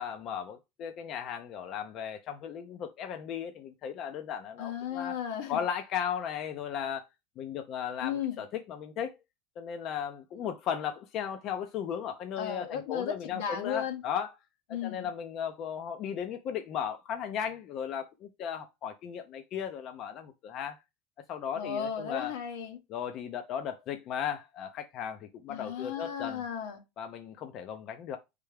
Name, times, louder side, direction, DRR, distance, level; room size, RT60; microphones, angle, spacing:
voice 1, 0.0-5.1 5.5-7.0 7.4-9.1 9.6-14.3 14.8-20.8 21.3-22.3 22.9-26.4 27.0-28.2, left 8 dB, 50° left, 0.5 m, -36 dB
voice 2, 4.6-5.6 8.0-8.4 12.4-14.0 14.7-15.1 21.6-22.8 25.5-26.8, left 8 dB, 80° left, 1.0 m, -35 dB
4.5 x 3.3 x 3.3 m
supercardioid pair, 115°, 0 cm